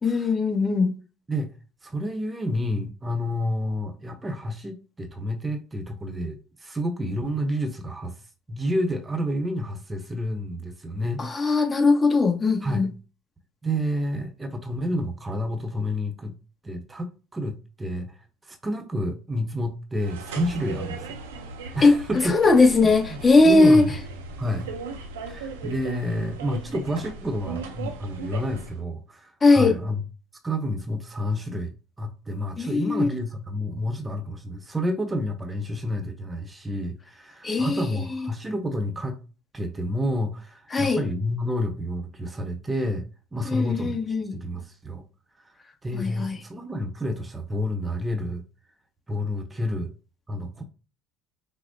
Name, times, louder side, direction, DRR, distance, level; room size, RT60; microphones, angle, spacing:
voice 1, 0.0-0.9 11.2-12.9 21.8-21.9 22.2-23.9 29.4-29.7 32.6-33.1 37.4-38.0 40.7-41.0 43.5-44.3 45.9-46.4, left 3 dB, 30° left, 1.1 m, -19 dB
voice 2, 1.8-8.1 8.5-11.6 12.6-12.9 13.6-16.4 16.6-18.1 18.4-21.1 21.7-22.4 23.1-23.2 23.4-24.0 24.4-24.7 25.3-30.0 30.4-31.7 32.0-39.2 39.5-43.0 43.3-45.1 45.4-45.5 45.8-48.4 49.1-49.9 50.3-50.6, equal, 20° right, 0.8 m, -29 dB
sound 1, 20.0-28.8, right 4 dB, 85° right, 0.6 m, -38 dB
5.9 x 2.1 x 2.6 m
hypercardioid pair, 65°, 0 cm